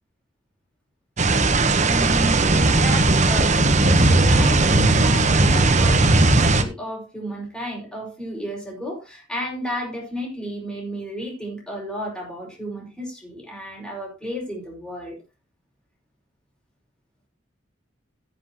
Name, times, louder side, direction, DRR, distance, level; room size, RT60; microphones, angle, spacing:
sound 1, 1.2-6.6, right 2 dB, 40° right, 1.1 m, -17 dB
voice 1, 1.8-15.2, equal, 5° left, 5.7 m, -32 dB
15.5 x 7.8 x 3.0 m
head